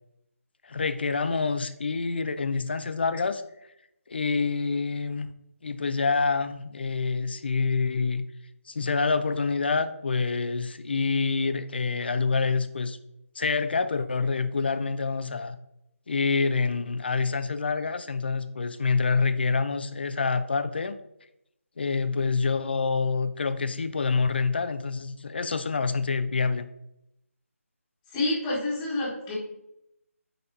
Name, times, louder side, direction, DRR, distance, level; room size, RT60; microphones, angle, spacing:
voice 1, 0.6-3.4 4.1-5.3 5.6-8.2 8.7-13.0 13.4-15.6 16.1-21.0 21.8-26.7, left 4 dB, 45° left, 11 dB, 0.4 m, -27 dB
voice 2, 28.1-29.4, left 2 dB, 10° left, -7 dB, 1.4 m, -28 dB
9.8 x 4.0 x 2.7 m, 0.82 s
figure-of-eight pair, 165°, 8 cm